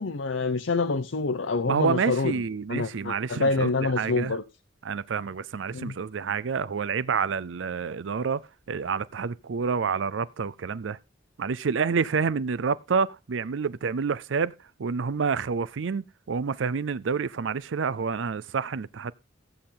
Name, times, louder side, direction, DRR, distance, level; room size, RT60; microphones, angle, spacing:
voice 1, 0.0-2.4 2.7-4.4 5.7-5.9, left 3 dB, 90° left, 0.7 m, -27 dB
voice 2, 1.7-4.4 4.8-8.4 8.7-11.0 11.4-14.5 14.8-19.1, right 5 dB, 85° right, 0.5 m, -28 dB
15.0 x 8.6 x 3.8 m
head